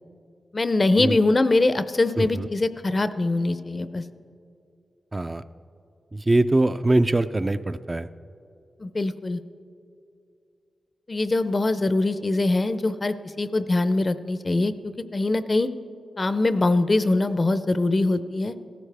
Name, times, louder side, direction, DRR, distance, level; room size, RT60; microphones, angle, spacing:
voice 1, 0.5-4.0 8.8-9.4 11.1-15.7 16.2-18.5, left 2 dB, 35° left, 12 dB, 0.5 m, -23 dB
voice 2, 2.2-2.5 5.1-5.4 6.1-8.1, right 2 dB, 25° right, 10 dB, 0.3 m, -22 dB
16.5 x 14.0 x 3.4 m, 2.5 s
cardioid pair, 80°, 0 cm